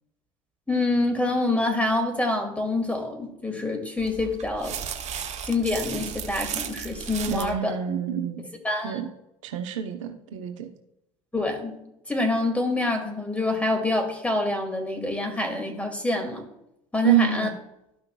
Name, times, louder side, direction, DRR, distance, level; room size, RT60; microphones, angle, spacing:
voice 1, 0.7-4.8 5.4-7.8 8.6-9.0 11.3-11.8 12.1-16.4 16.9-17.5, left 2 dB, 10° left, 4 dB, 2.2 m, -26 dB
sound 1, 4.0-7.6, right 8 dB, 45° right, 1.1 m, -35 dB
voice 2, 7.3-8.5 8.8-9.1 9.4-10.7 17.0-17.5, right 9 dB, 80° right, 6 dB, 0.7 m, -26 dB
13.0 x 5.8 x 2.3 m, 0.83 s
hypercardioid pair, 65°, 16 cm